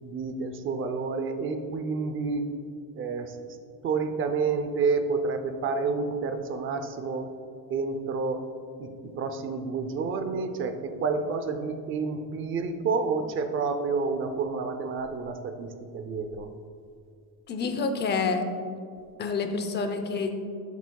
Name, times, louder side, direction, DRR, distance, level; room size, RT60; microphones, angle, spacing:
voice 1, 0.0-2.5 3.0-3.6 3.8-7.3 7.7-8.4 8.8-8.9 9.1-16.5, right 4 dB, 35° right, 8 dB, 0.6 m, -29 dB
voice 2, 17.5-18.4 19.2-20.3, left 4 dB, 25° left, 7 dB, 0.6 m, -28 dB
12.0 x 8.1 x 2.3 m, 2.4 s
cardioid pair, 170°, 38 cm